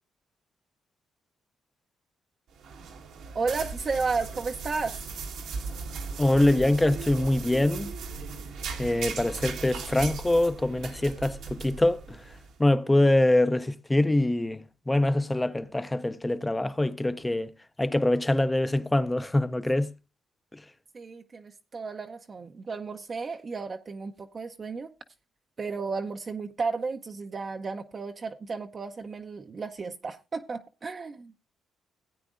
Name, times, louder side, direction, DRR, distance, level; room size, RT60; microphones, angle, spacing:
sound 1, 2.5-12.5, right 5 dB, 85° right, 1.6 m, -38 dB
voice 1, 3.3-5.0 20.9-24.9 25.6-31.3, right 4 dB, 40° right, 0.6 m, -33 dB
voice 2, 6.2-7.9 8.8-12.3 12.6-17.5 17.8-19.9 20.5-20.6, left 1 dB, 15° left, 0.6 m, -24 dB
16.5 x 8.8 x 2.5 m
cardioid pair, 90°, 0 cm